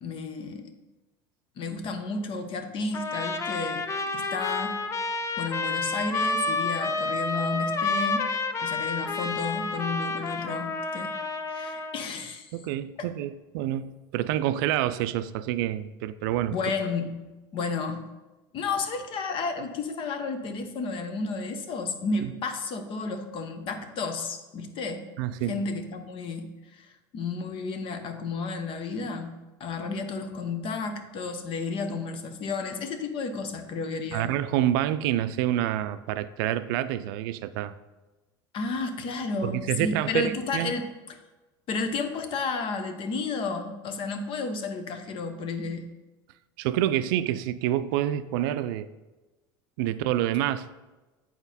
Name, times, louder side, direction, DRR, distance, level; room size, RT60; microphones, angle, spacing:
voice 1, 0.0-0.7 1.6-4.9 5.4-8.3 8.6-11.2 11.5-12.5 13.0-13.1 16.5-17.1 17.5-18.1 18.5-25.1 25.5-26.9 27.1-34.3 38.5-40.9 41.7-45.8, left 4 dB, 50° left, 1.0 m, -32 dB
Trumpet, 2.9-12.1, left 3 dB, 25° left, 0.5 m, -29 dB
voice 2, 12.5-16.6 22.2-22.3 25.2-25.5 34.1-37.8 39.4-40.7 46.6-48.9 49.8-50.7, right 12 dB, 80° right, 0.4 m, -27 dB
8.1 x 4.4 x 4.1 m
supercardioid pair, 105°, 12 cm